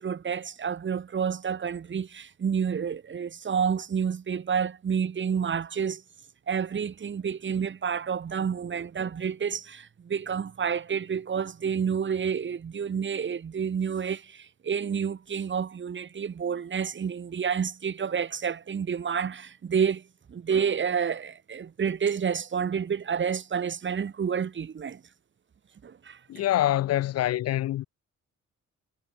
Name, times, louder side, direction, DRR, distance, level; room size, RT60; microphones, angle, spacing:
voice 1, 0.0-6.0 6.5-25.0 25.8-26.4, right 7 dB, 40° right, 1.5 m, -29 dB
voice 2, 26.3-27.8, left 13 dB, 55° left, 0.4 m, -25 dB
cardioid pair, 90°, 30 cm